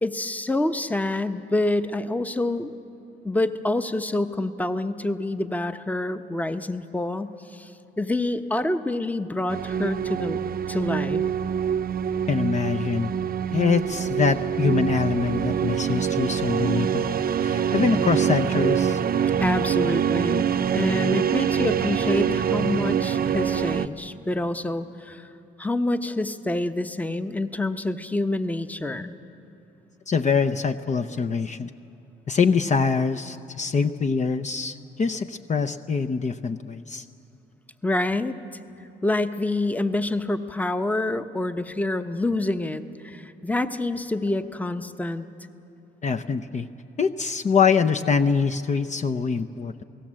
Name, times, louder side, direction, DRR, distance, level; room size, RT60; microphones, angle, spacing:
voice 1, 0.0-2.7 3.2-7.7 8.0-10.4 10.7-11.2 19.4-20.5 20.7-25.3 25.6-29.1 37.8-38.4 39.0-45.3, left 2 dB, 10° left, 10 dB, 0.9 m, -27 dB
sound 1, 9.5-23.9, right 8 dB, 50° right, 0.7 m, -25 dB
voice 2, 12.3-13.1 13.5-19.0 30.1-31.7 32.3-37.1 46.0-46.7 47.0-49.8, left 5 dB, 35° left, 7 dB, 0.7 m, -24 dB
29.0 x 18.0 x 7.6 m, 2.8 s
cardioid pair, 90°, 20 cm